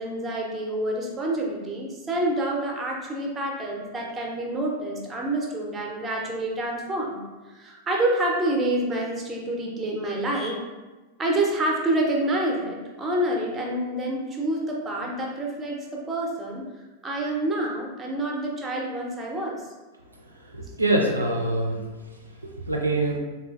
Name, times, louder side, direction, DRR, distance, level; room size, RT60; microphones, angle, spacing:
voice 1, 0.0-10.6 11.2-16.7 17.0-19.6, right 1 dB, 20° right, 0 dB, 0.6 m, -27 dB
voice 2, 20.5-21.8 22.4-23.2, right 2 dB, 85° right, 0 dB, 0.4 m, -24 dB
3.7 x 2.3 x 2.4 m, 1.2 s
figure-of-eight pair, 90°, 0 cm